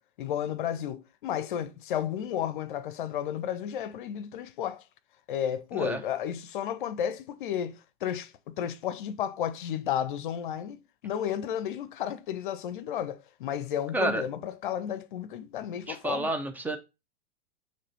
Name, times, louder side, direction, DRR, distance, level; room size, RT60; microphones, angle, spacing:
voice 1, 0.2-4.8 5.3-16.3, left 9 dB, 55° left, 0.8 m, -33 dB
voice 2, 15.9-16.8, right 2 dB, 5° right, 0.9 m, -29 dB
6.7 x 3.3 x 5.6 m
figure-of-eight pair, 95°, 31 cm